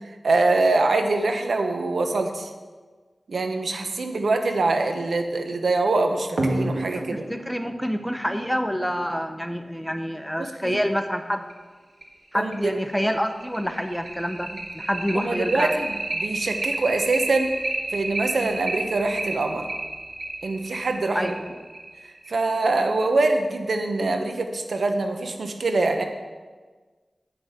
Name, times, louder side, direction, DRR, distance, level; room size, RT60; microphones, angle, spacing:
voice 1, 0.2-2.5 3.3-7.2 10.4-10.8 12.3-12.7 15.1-15.7 16.2-17.5 17.9-19.7 20.4-21.3 22.3-26.0, right 3 dB, 85° right, 5 dB, 1.0 m, -24 dB
sound 1, 6.4-9.5 11.0-11.1 11.5-11.6 12.0-12.1 12.5-22.6, right 2 dB, 70° right, 1.6 m, -31 dB
voice 2, 7.0-11.4 12.3-15.7 21.1-21.4, equal, 5° left, 7 dB, 0.7 m, -27 dB
9.1 x 6.0 x 8.0 m, 1.4 s
wide cardioid pair, 65°, 0 cm